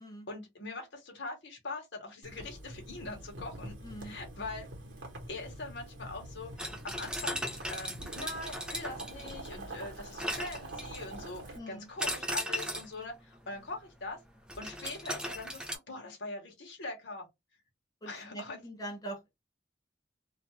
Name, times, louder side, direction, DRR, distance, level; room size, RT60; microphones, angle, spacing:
voice 1, 0.3-3.7 4.0-4.7 5.3-14.2 14.6-17.3 18.1-18.6, left 2 dB, 70° left, 0.9 m, -42 dB
Boiling, 2.2-11.6, right 1 dB, 65° right, 0.9 m, -45 dB
voice 2, 3.8-4.2 11.5-11.9 18.0-19.2, right 1 dB, 20° left, 0.7 m, -43 dB
sound 1, 6.6-9.6 10.2-11.2 12.0-13.0 14.5-15.8, equal, 5° right, 0.3 m, -37 dB
2.4 x 2.3 x 2.9 m
head